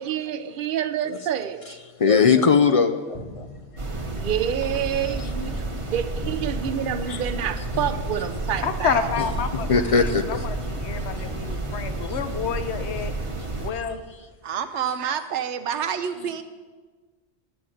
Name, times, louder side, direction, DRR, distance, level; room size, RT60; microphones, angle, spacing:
voice 1, 0.0-1.8 4.1-9.1, right 9 dB, 55° right, 11 dB, 0.7 m, -28 dB
voice 2, 2.0-3.5 9.7-10.4, left 5 dB, 55° left, 9 dB, 0.3 m, -19 dB
sound 1, 3.1-12.6, left 1 dB, 35° left, 1.3 m, -41 dB
sound 2, 3.8-13.7, right 2 dB, 30° right, 1.0 m, -31 dB
voice 3, 8.6-13.1 13.6-14.0, left 7 dB, 70° left, 9 dB, 1.1 m, -29 dB
voice 4, 14.4-16.4, right 8 dB, 85° right, 10 dB, 1.0 m, -28 dB
9.8 x 6.9 x 7.7 m, 1.4 s
omnidirectional pair, 1.2 m